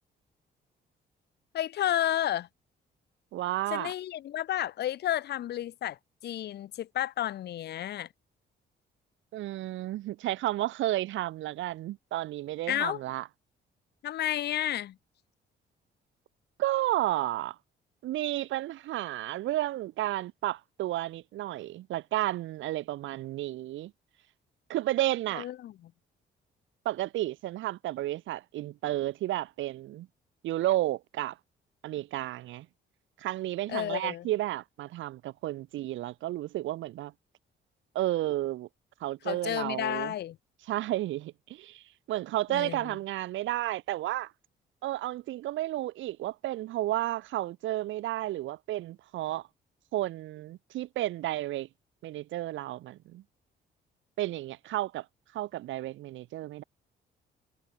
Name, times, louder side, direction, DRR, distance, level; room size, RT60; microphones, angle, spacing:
voice 1, 1.5-2.5 3.7-6.0 6.2-8.1 12.7-13.0 14.0-15.0 25.4-25.9 33.7-34.3 39.3-40.4 42.5-42.9, left 12 dB, 55° left, 0.5 m, -31 dB
voice 2, 3.3-3.9 9.3-13.3 16.6-17.6 18.0-23.9 24.7-25.5 26.8-30.1 30.4-31.4 31.8-32.7 33.2-37.1 37.9-38.7 39.0-40.1 40.7-44.3 44.8-49.5 49.9-51.7 52.0-53.2 54.2-55.1 55.3-56.6, right 15 dB, 75° right, 0.6 m, -32 dB
cardioid pair, 90°, 20 cm